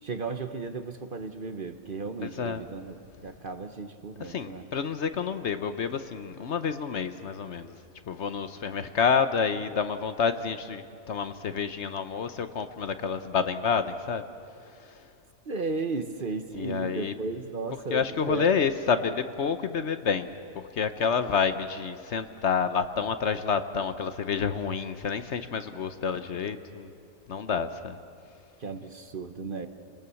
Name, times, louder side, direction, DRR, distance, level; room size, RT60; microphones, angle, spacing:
voice 1, 0.0-3.0 3.2-4.6 15.4-18.6 28.6-29.7, right 3 dB, 45° right, 8 dB, 1.0 m, -35 dB
voice 2, 2.2-2.6 4.3-7.8 8.1-14.2 14.7-15.1 16.6-17.1 17.9-20.3 20.5-26.9 27.3-28.0, left 6 dB, 60° left, 10 dB, 1.1 m, -29 dB
29.0 x 20.0 x 7.0 m, 2.5 s
omnidirectional pair, 1.4 m